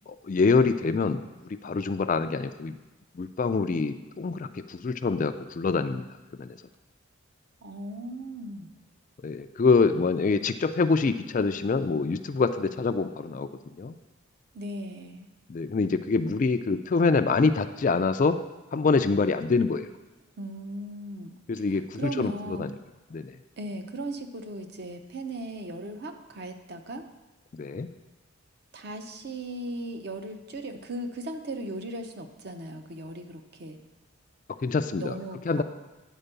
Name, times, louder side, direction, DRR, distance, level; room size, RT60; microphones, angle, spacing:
voice 1, 0.1-2.8 3.1-6.1 6.4-6.6 9.2-14.0 15.5-18.4 18.7-19.9 21.5-22.7 23.1-23.4 27.5-27.9 34.6-35.2 35.5-35.6, left 4 dB, 35° left, 9 dB, 0.3 m, -25 dB
voice 2, 7.6-8.7 14.5-15.3 20.4-22.7 23.6-27.0 28.7-33.8 35.0-35.6, right 1 dB, 50° right, 6 dB, 0.7 m, -37 dB
10.0 x 4.4 x 6.7 m, 1.1 s
head